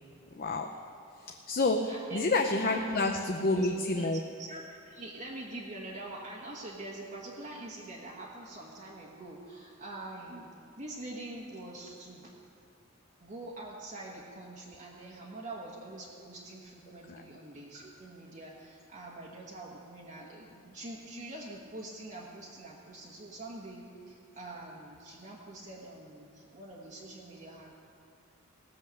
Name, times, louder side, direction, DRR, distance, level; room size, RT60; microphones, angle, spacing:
voice 1, 0.3-0.8 1.2-4.2 17.1-17.2, left 2 dB, 45° left, 4 dB, 0.6 m, -29 dB
voice 2, 1.9-2.3 2.6-2.8 3.5-3.7 4.0-4.1 4.4-10.5 10.8-12.3 13.2-27.7, right 2 dB, 40° right, -5 dB, 1.4 m, -45 dB
18.0 x 7.6 x 6.4 m, 2.4 s
head